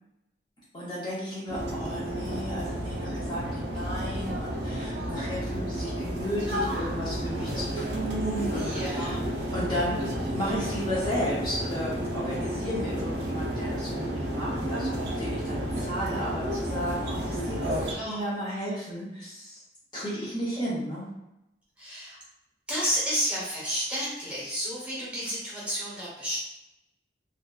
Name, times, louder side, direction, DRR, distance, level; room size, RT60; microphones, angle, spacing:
voice 1, 0.7-9.2 9.5-19.6 19.9-21.2, equal, 25° left, -8 dB, 0.5 m, -34 dB
sound 1, 1.5-17.9, right 1 dB, 65° right, 0.4 m, -31 dB
voice 2, 8.5-9.2 17.8-18.2 21.8-22.2 22.7-26.4, equal, 10° right, -8 dB, 0.8 m, -31 dB
2.7 x 2.3 x 2.2 m, 0.88 s
head